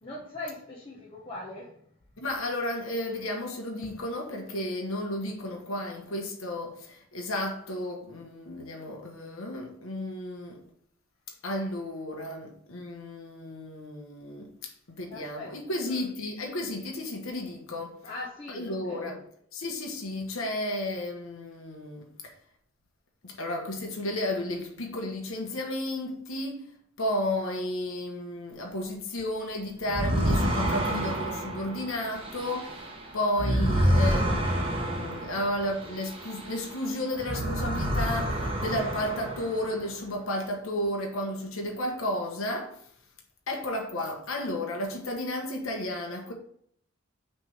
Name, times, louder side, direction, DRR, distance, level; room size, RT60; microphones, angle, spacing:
voice 1, 0.0-1.8 15.1-16.1 18.0-19.2, left 2 dB, 25° left, 1.0 m, -41 dB
voice 2, 2.2-10.6 11.4-18.0 18.5-19.2 19.5-22.3 23.2-26.7 27.0-32.9 33.1-42.8 43.5-46.3, left 1 dB, 80° left, 1.1 m, -33 dB
sound 1, 29.9-36.8 37.1-39.8, right 1 dB, 25° right, 1.0 m, -28 dB
6.1 x 3.4 x 5.8 m
head